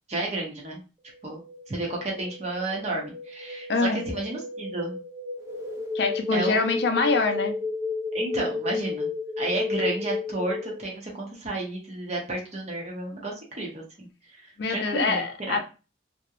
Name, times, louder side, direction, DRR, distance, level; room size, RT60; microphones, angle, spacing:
voice 1, 0.1-0.8 1.2-1.4 1.7-5.0 6.3-6.7 8.1-9.1 9.4-14.1 14.3-15.6, right 2 dB, 40° right, -1 dB, 0.7 m, -32 dB
sound 1, 1.1-11.0, left 4 dB, 15° right, 0.4 m, -33 dB
voice 2, 3.7-4.0 5.9-7.5 14.6-15.6, left 3 dB, 60° left, 6 dB, 0.4 m, -24 dB
2.8 x 2.1 x 2.3 m, 0.31 s
head